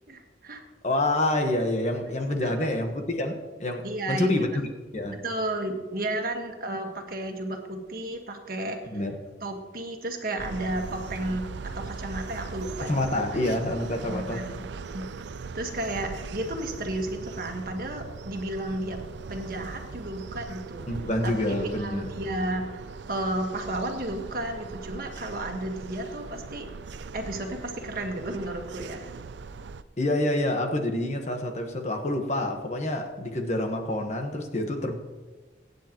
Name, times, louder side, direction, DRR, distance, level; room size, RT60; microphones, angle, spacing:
voice 1, 0.1-0.6 2.4-2.7 3.8-4.4 5.1-8.8 9.4-11.4 11.7-13.4 14.1-14.7 14.9-15.1 15.5-19.0 19.3-20.8 21.2-22.8 23.1-26.7 27.1-29.1, right 1 dB, 50° right, 1.6 m, -33 dB
voice 2, 0.8-4.5 4.9-5.2 8.9-9.2 12.9-14.4 20.9-22.1 30.0-34.9, left 1 dB, 40° left, 1.3 m, -27 dB
sound 1, 10.4-29.8, right 4 dB, 75° right, 0.5 m, -40 dB
23.5 x 9.4 x 3.0 m
head